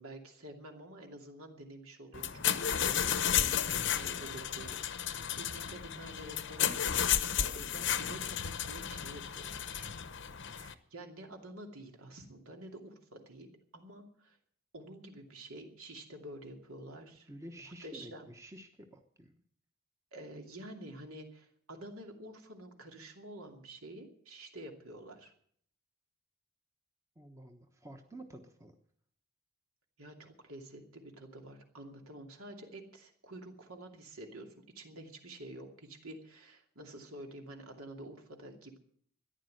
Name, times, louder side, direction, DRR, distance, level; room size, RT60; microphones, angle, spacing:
voice 1, 0.0-9.9 10.4-13.5 13.7-14.4 14.7-18.3 20.1-25.3 30.0-38.8, right 1 dB, 75° right, 3 dB, 2.7 m, -49 dB
sound 1, 2.1-10.7, left 9 dB, 55° left, 0.9 m, -33 dB
voice 2, 17.3-19.4 27.2-28.7, right 1 dB, 15° right, 5 dB, 1.0 m, -50 dB
14.0 x 10.5 x 7.8 m, 0.62 s
head